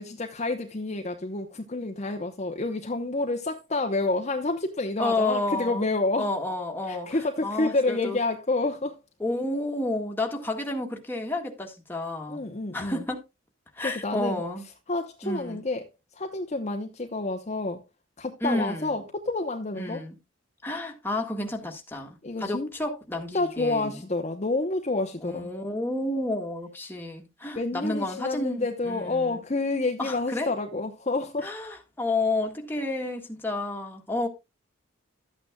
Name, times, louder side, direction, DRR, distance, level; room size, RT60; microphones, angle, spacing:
voice 1, 0.0-6.3 6.9-9.0 12.3-13.0 13.8-14.4 14.9-15.9 16.1-17.8 18.2-20.0 22.2-22.7 23.3-25.5 27.5-31.7, left 2 dB, 35° left, 0.9 m, -29 dB
voice 2, 5.0-5.9 6.1-7.2 7.4-8.2 9.2-12.4 12.7-13.2 13.7-14.6 15.2-15.6 18.4-18.9 19.8-20.2 20.6-24.0 25.2-29.4 30.0-30.5 31.4-34.3, left 2 dB, 10° left, 1.7 m, -30 dB
12.5 x 8.8 x 2.3 m
head